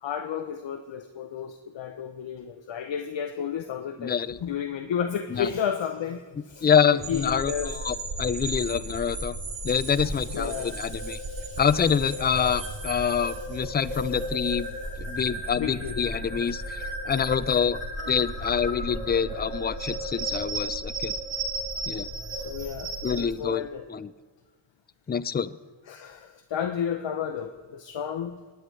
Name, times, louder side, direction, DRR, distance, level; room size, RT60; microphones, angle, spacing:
voice 1, 0.0-7.7 9.8-11.6 12.1-12.8 13.2-13.5 15.6-16.0 21.9-22.1 22.3-23.8 25.9-28.4, left 8 dB, 65° left, 7 dB, 0.7 m, -33 dB
voice 2, 4.0-4.4 5.3-5.5 6.6-9.4 9.6-11.2 11.6-14.7 15.0-16.8 17.1-17.8 18.1-21.1 21.9-22.1 23.0-24.1 25.1-25.6, left 7 dB, 25° left, 16 dB, 0.3 m, -26 dB
sound 1, 7.0-23.2, right 1 dB, 80° right, 2.2 m, -34 dB
19.5 x 9.3 x 3.2 m, 1.5 s
cardioid pair, 55°, 47 cm